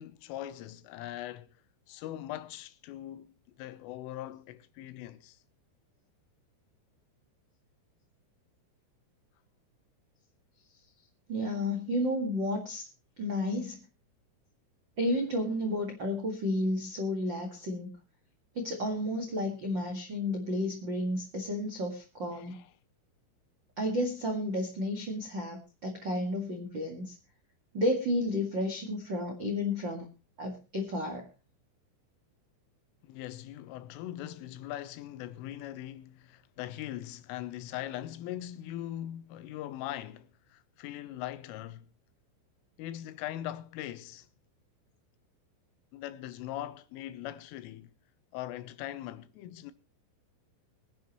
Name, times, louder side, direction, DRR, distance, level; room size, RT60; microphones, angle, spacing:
voice 1, 0.0-1.5 1.9-5.4 22.3-22.7 33.0-41.9 42.8-44.3 45.9-47.9 48.3-49.7, left 13 dB, 90° left, 3.4 m, -41 dB
voice 2, 11.3-12.8 13.2-13.8 15.0-17.9 18.5-22.6 23.8-27.1 27.7-30.1 30.4-31.3, left 1 dB, 75° right, 1.0 m, -32 dB
22.5 x 10.5 x 3.1 m
omnidirectional pair, 5.6 m